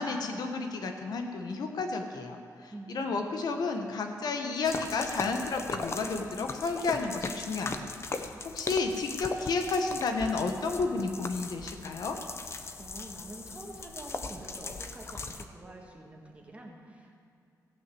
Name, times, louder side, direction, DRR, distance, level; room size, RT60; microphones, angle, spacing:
voice 1, 0.0-12.2, left 4 dB, 75° left, 4 dB, 1.1 m, -32 dB
voice 2, 2.7-3.2 12.8-17.2, right 1 dB, 20° right, -1 dB, 1.8 m, -46 dB
sound 1, 4.6-15.4, left 3 dB, 40° left, 0.7 m, -39 dB
16.0 x 6.0 x 7.7 m, 2.5 s
wide cardioid pair, 130°, 7 cm